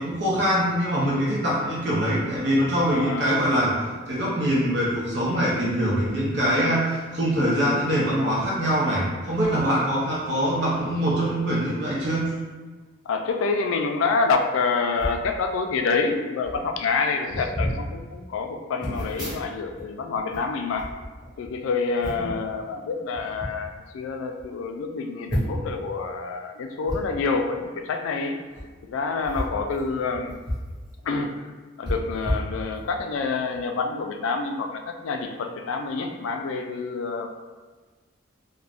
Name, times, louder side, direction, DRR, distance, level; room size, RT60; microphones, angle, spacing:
voice 1, 0.0-12.3 22.2-22.4, equal, 60° right, -6 dB, 0.6 m, -23 dB
voice 2, 2.9-3.4 13.1-20.9 21.4-28.4 28.8-30.3 31.0-31.3 31.8-37.3, left 4 dB, 90° left, 5 dB, 0.3 m, -27 dB
sound 1, 15.0-15.3 16.1-16.2 16.4-16.7 17.3-17.8 18.8-19.8 20.1-21.5 22.0-22.4 23.1-23.5 24.1-24.2 24.4-24.5 25.3-25.8 26.8-27.0 28.4-28.6 29.2-30.7 31.0-31.1 31.8-33.0 33.5-33.7, equal, 20° right, 1.1 m, -31 dB
2.4 x 2.1 x 3.3 m, 1.3 s
head